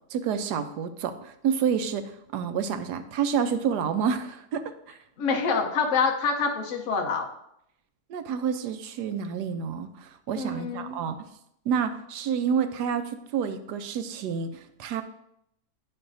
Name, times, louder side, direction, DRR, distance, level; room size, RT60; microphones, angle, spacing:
voice 1, 0.1-5.0 8.1-11.2 11.7-15.0, right 7 dB, 90° right, 9 dB, 1.2 m, -29 dB
voice 2, 5.2-7.3 10.3-11.0, left 5 dB, 55° left, 2 dB, 1.0 m, -26 dB
9.8 x 5.5 x 2.6 m, 0.76 s
omnidirectional pair, 1.7 m